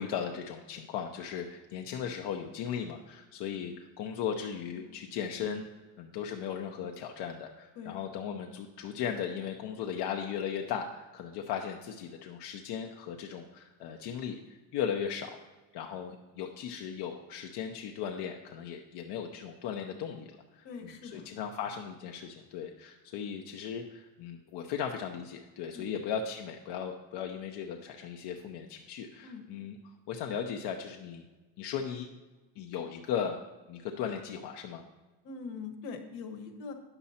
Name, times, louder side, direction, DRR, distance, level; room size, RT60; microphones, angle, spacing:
voice 1, 0.0-5.7 6.0-15.3 15.7-20.7 21.0-29.8 30.1-31.2 31.6-32.1 32.6-33.4 33.7-34.8, left 8 dB, 70° left, 3 dB, 0.8 m, -37 dB
voice 2, 20.6-21.3 25.7-26.0 29.2-29.4 35.2-36.7, left 5 dB, 85° left, 6 dB, 1.4 m, -43 dB
9.8 x 7.0 x 4.2 m, 1.2 s
cardioid pair, 135°, 43 cm